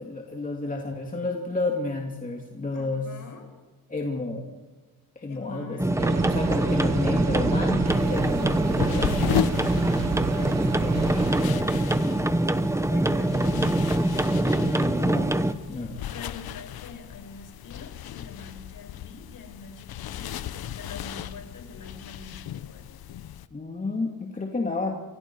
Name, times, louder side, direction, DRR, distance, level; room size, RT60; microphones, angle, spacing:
voice 1, 0.0-3.1 3.9-4.5 5.2-9.2 14.5-15.3 15.7-16.0 23.5-25.0, left 3 dB, 20° left, 1 dB, 2.6 m, -31 dB
voice 2, 2.7-3.5 5.2-6.0 6.6-7.3 9.3-15.2 15.7-22.9, left 4 dB, 60° left, 4 dB, 6.4 m, -44 dB
sound 1, 5.8-15.5, right 1 dB, 10° right, 1.0 m, -24 dB
sound 2, 6.0-11.4, right 8 dB, 45° right, 0.8 m, -32 dB
sound 3, 7.9-23.5, left 10 dB, 80° left, 1.0 m, -35 dB
29.5 x 26.0 x 4.7 m, 1.3 s
wide cardioid pair, 140°, 36 cm